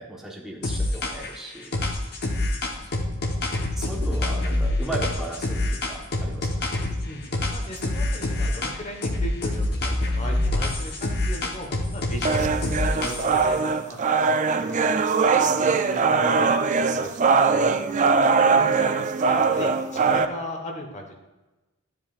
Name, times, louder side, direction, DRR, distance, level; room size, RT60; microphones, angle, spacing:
voice 1, 0.0-1.7 3.8-6.9, right 1 dB, ahead, -3 dB, 1.1 m, -36 dB
sound 1, 0.6-1.4 1.7-7.0 7.3-8.8 9.0-13.5, left 1 dB, 50° left, 1.2 m, -26 dB
voice 2, 7.0-12.4 12.7-16.5 16.8-17.1 17.5-18.9 19.2-21.1, equal, 35° left, 2 dB, 1.2 m, -37 dB
sound 2, 12.3-20.3, right 5 dB, 35° right, 0.4 m, -21 dB
11.5 x 7.9 x 2.5 m, 1.1 s
head